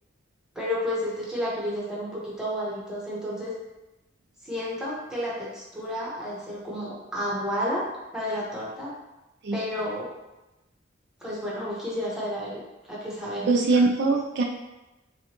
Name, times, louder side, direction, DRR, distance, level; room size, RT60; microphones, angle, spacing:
voice 1, 0.5-3.5 4.4-7.8 8.1-8.9 9.5-10.1 11.2-12.6 12.9-13.5, equal, 5° right, -6 dB, 1.0 m, -31 dB
voice 2, 13.5-14.4, right 3 dB, 60° right, 2 dB, 0.4 m, -22 dB
6.0 x 2.2 x 2.9 m, 1.0 s
head